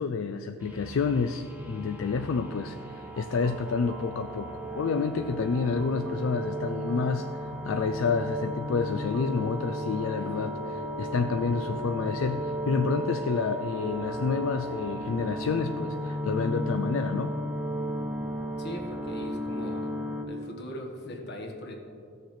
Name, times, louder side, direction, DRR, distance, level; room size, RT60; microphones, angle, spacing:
voice 1, 0.0-4.5 4.8-10.5 11.0-17.3, left 5 dB, 75° left, 7 dB, 0.4 m, -29 dB
sound 1, 0.6-20.2, equal, 10° right, 0.8 m, -34 dB
sound 2, 2.9-9.8, right 6 dB, 65° right, 0.4 m, -50 dB
voice 2, 10.2-10.6 18.6-19.9 20.3-21.8, equal, 55° left, 2 dB, 1.3 m, -40 dB
15.0 x 6.5 x 3.2 m, 2.4 s
head